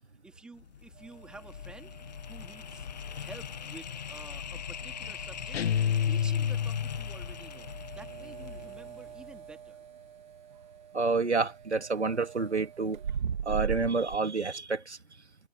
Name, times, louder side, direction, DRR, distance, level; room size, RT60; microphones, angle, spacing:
voice 1, 0.2-2.0 2.2-2.9 3.1-5.6 6.0-9.8, right 3 dB, 5° right, 3.2 m, -50 dB
sound 1, 0.5-9.7, left 8 dB, 40° left, 1.5 m, -42 dB
sound 2, 1.0-14.2, right 7 dB, 45° right, 3.1 m, -42 dB
sound 3, 5.5-7.2, left 8 dB, 70° left, 0.5 m, -28 dB
voice 2, 10.9-13.0 13.5-15.0, right 4 dB, 85° right, 2.9 m, -29 dB
figure-of-eight pair, 155°, 33 cm